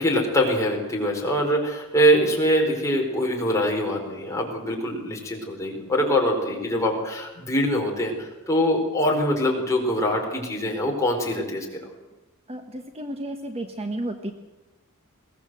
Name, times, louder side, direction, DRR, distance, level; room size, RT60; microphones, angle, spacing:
voice 1, 0.0-11.8, equal, 15° left, 0 dB, 4.8 m, -23 dB
voice 2, 12.5-14.3, right 1 dB, 30° right, 6 dB, 1.4 m, -32 dB
21.5 x 18.0 x 7.8 m, 1.1 s
head